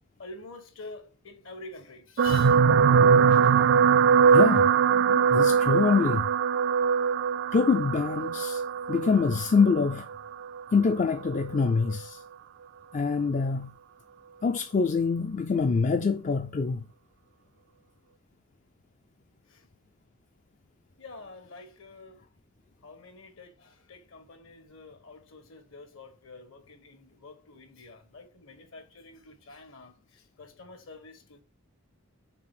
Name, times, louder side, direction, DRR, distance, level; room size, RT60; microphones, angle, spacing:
voice 1, 0.2-2.6 19.5-19.7 21.0-22.2 22.8-31.4, left 3 dB, 60° left, 1.3 m, -47 dB
sound 1, 2.2-10.6 11.4-11.6 11.9-12.0, right 6 dB, 50° right, 0.3 m, -22 dB
voice 2, 4.3-6.3 7.5-8.6 8.9-10.1 10.7-12.2 12.9-13.7 14.4-16.8, left 4 dB, 35° left, 0.3 m, -25 dB
6.0 x 4.0 x 6.1 m
head